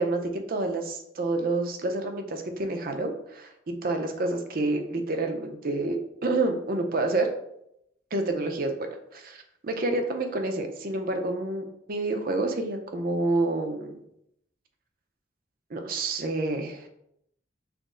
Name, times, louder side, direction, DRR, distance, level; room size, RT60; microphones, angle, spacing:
voice 1, 0.0-7.3 8.1-14.0 15.7-16.9, right 2 dB, 50° right, 5 dB, 0.5 m, -28 dB
5.8 x 2.0 x 3.7 m, 0.77 s
head